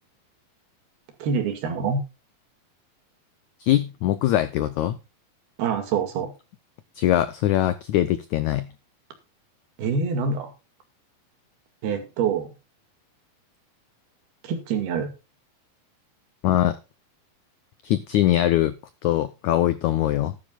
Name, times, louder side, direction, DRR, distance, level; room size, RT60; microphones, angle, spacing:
voice 1, 1.2-2.0 5.6-6.3 9.8-10.5 11.8-12.5 14.4-15.1, right 5 dB, 85° right, 4.1 m, -25 dB
voice 2, 3.6-5.0 7.0-8.7 16.4-16.8 17.8-18.7 19.0-20.3, left 13 dB, 85° left, 1.6 m, -22 dB
13.5 x 12.0 x 2.4 m
omnidirectional pair, 4.3 m